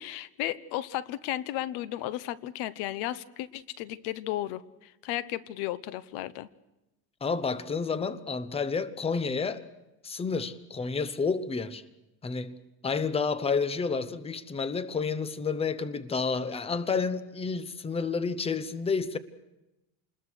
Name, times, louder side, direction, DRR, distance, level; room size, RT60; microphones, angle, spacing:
voice 1, 0.0-6.5, left 14 dB, 85° left, 1.1 m, -34 dB
voice 2, 7.2-9.7 10.0-11.8 12.2-12.6 12.8-19.2, left 5 dB, 15° left, 1.0 m, -30 dB
28.0 x 21.0 x 6.4 m
cardioid pair, 150°, 38 cm